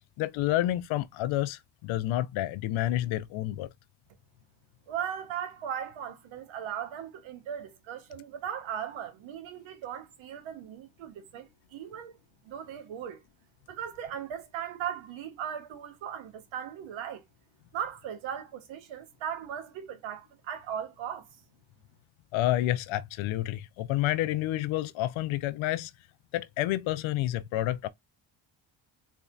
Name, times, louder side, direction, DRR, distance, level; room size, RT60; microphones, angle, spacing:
voice 1, 0.2-3.7 22.3-25.9 26.3-27.9, left 14 dB, 85° left, 0.5 m, -29 dB
voice 2, 4.9-12.2 12.4-13.2 13.7-17.2 17.7-21.3, right 9 dB, 85° right, 0.9 m, -38 dB
4.2 x 2.7 x 2.2 m
cardioid pair, 75°, 46 cm